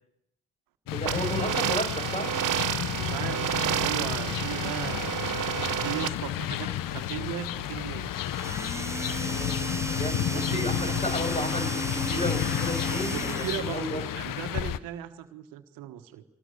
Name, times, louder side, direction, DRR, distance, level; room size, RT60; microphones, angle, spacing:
sound 1, 0.9-14.8, left 12 dB, 75° left, 1.1 m, -32 dB
voice 1, 0.9-2.3 9.3-9.6 9.9-14.1, left 1 dB, 20° left, 7 dB, 6.6 m, -33 dB
sound 2, 1.1-6.1, right 12 dB, 65° right, 1.0 m, -30 dB
voice 2, 2.9-5.2 5.8-8.1 10.3-11.0 13.1-16.2, right 11 dB, 85° right, 9 dB, 1.5 m, -37 dB
sound 3, 8.1-14.0, right 2 dB, 10° right, 1.0 m, -35 dB
23.5 x 20.0 x 9.7 m, 0.76 s
hypercardioid pair, 45°, 33 cm